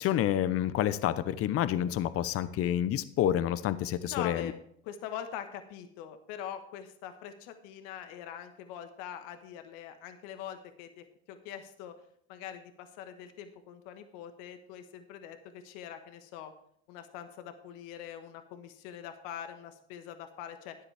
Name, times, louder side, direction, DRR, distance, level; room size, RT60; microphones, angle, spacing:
voice 1, 0.0-4.5, left 11 dB, 45° left, 15 dB, 0.7 m, -28 dB
voice 2, 4.0-4.5 4.8-11.9 12.3-16.5 16.9-20.8, left 9 dB, 70° left, 8 dB, 1.3 m, -43 dB
13.0 x 9.8 x 3.4 m, 0.65 s
supercardioid pair, 95°, 33 cm